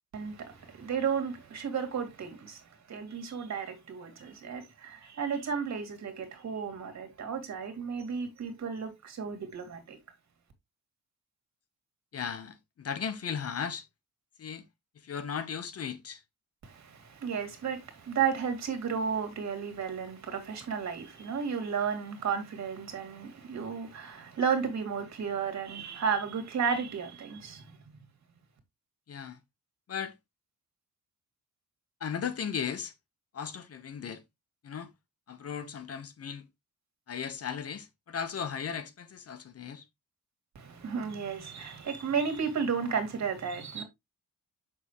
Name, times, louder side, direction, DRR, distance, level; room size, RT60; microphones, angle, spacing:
voice 1, 0.1-2.6 2.9-10.0 16.6-27.8 40.6-43.8, right 6 dB, 55° right, 2.3 m, -33 dB
voice 2, 12.1-13.8 14.4-14.6 15.0-16.2 29.1-29.4 29.9-30.1 32.0-32.9 33.3-34.2 34.6-34.9 35.3-36.5 37.1-39.8, left 7 dB, 45° left, 1.0 m, -36 dB
7.3 x 6.1 x 3.0 m
wide cardioid pair, 175°, 34 cm